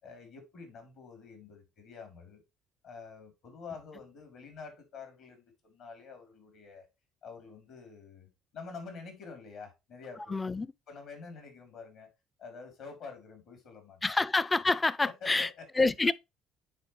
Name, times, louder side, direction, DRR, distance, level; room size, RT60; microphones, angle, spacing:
voice 1, 0.0-2.4 2.8-6.9 7.2-10.4 10.9-12.1 12.4-14.2 15.0-15.9, left 5 dB, 70° left, 3.0 m, -47 dB
voice 2, 10.3-10.7 14.0-15.5 15.8-16.1, left 3 dB, 20° left, 0.4 m, -27 dB
9.8 x 4.4 x 3.1 m
supercardioid pair, 80°, 0 cm